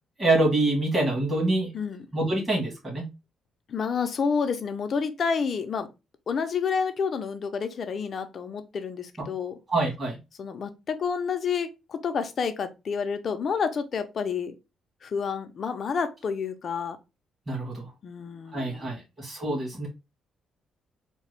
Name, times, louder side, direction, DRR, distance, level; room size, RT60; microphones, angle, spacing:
voice 1, 0.2-1.7 2.1-3.1 9.7-10.2 17.5-17.9 18.5-19.9, right 2 dB, 25° right, 2.1 m, -25 dB
voice 2, 1.7-2.1 3.7-5.9 6.3-9.6 10.4-14.5 15.0-17.0 18.0-19.0, left 6 dB, 50° left, 0.6 m, -29 dB
3.7 x 2.3 x 3.3 m
cardioid pair, 90°, 0 cm